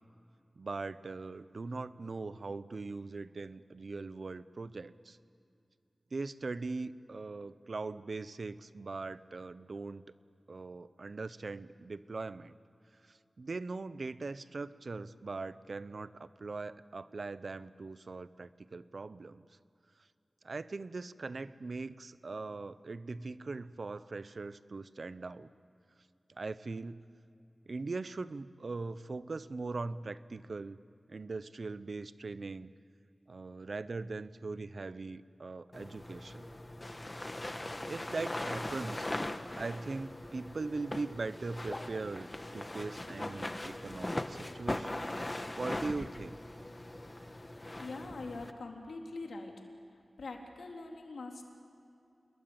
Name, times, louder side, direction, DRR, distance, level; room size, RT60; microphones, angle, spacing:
voice 1, 0.6-5.2 6.1-10.0 10.5-12.5 13.4-19.4 20.4-25.5 26.3-27.0 27.7-30.8 31.1-32.7 33.3-36.5 37.9-39.1 39.6-42.3 42.5-45.0 45.6-46.4, right 3 dB, 60° right, 14 dB, 0.8 m, -40 dB
sound 1, 35.7-48.5, left 1 dB, 25° left, 1.4 m, -40 dB
voice 2, 47.8-49.5 50.2-51.4, left 3 dB, 85° left, 1 dB, 3.7 m, -43 dB
28.5 x 22.0 x 8.9 m, 2.6 s
wide cardioid pair, 70°, 0 cm